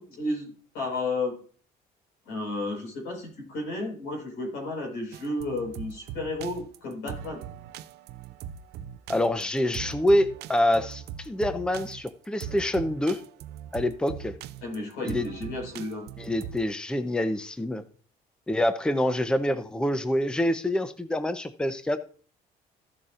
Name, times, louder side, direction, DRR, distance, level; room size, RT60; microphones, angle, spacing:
voice 1, 0.0-1.4 2.2-7.4 14.6-16.1, left 2 dB, 90° left, 1 dB, 4.7 m, -32 dB
sound 1, 5.1-16.6, right 9 dB, 75° right, 0.5 m, -40 dB
voice 2, 9.1-13.2 13.7-14.3 15.0-15.3 16.2-17.8 18.5-22.0, left 1 dB, 5° left, 10 dB, 0.7 m, -26 dB
14.5 x 6.8 x 2.5 m, 0.43 s
cardioid pair, 110°, 17 cm